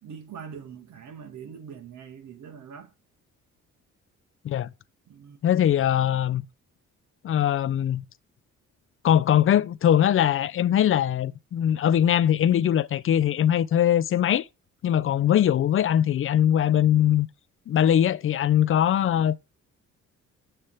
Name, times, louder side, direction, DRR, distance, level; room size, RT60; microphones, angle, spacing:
voice 1, 0.0-2.9 5.1-5.4 15.1-15.3, right 7 dB, 70° right, 1.4 m, -43 dB
voice 2, 5.4-6.4 7.2-8.0 9.0-14.5 14.8-17.3 17.7-19.4, left 10 dB, 45° left, 0.4 m, -21 dB
7.4 x 3.4 x 5.6 m
cardioid pair, 90°, 30 cm